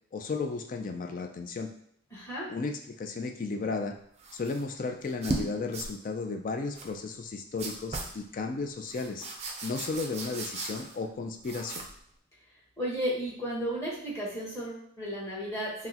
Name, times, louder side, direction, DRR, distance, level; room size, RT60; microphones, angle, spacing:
voice 1, 0.1-1.7 2.5-3.9 4.3-9.3 9.6-11.9, left 4 dB, 40° left, 5 dB, 0.3 m, -34 dB
voice 2, 2.1-2.5 12.8-15.9, equal, 15° left, -7 dB, 1.2 m, -34 dB
sound 1, 4.2-4.6 5.1-5.5 5.7-5.9 6.8-6.9 7.6-8.2 8.9-11.1 11.4-12.0, right 2 dB, 30° right, 0.5 m, -37 dB
5.7 x 2.1 x 2.8 m, 0.68 s
head